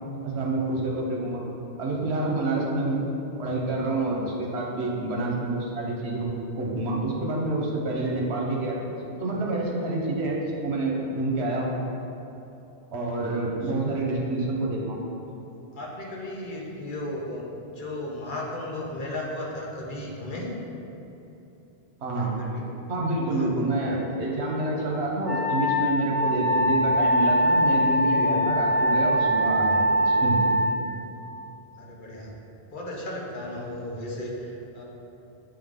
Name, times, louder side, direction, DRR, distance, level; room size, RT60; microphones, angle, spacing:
voice 1, 0.2-1.4 1.8-3.0 3.4-8.8 9.2-11.7 12.9-15.0 22.0-22.3 22.9-30.5, right 2 dB, 85° right, -2 dB, 1.2 m, -27 dB
voice 2, 13.6-14.0 15.7-20.6 22.2-22.7 23.3-23.7 31.8-32.3 32.7-34.8, left 1 dB, 55° left, -3 dB, 1.0 m, -35 dB
Wind instrument woodwind instrument, 25.2-30.8, equal, ahead, 1.1 m, -22 dB
7.4 x 3.7 x 3.6 m, 3.0 s
omnidirectional pair, 1.1 m